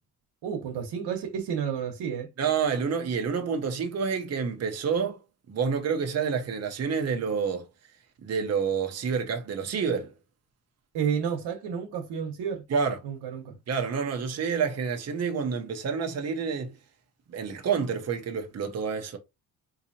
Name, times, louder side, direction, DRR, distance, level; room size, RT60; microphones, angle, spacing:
voice 1, 0.4-2.3 10.9-12.6 13.0-13.6, right 7 dB, 90° right, 1.1 m, -31 dB
voice 2, 2.4-5.2 5.5-7.7 8.2-10.1 12.7-13.0 13.7-16.8 17.3-19.2, right 6 dB, 40° right, 0.8 m, -28 dB
4.0 x 2.8 x 2.7 m
cardioid pair, 105°, 39 cm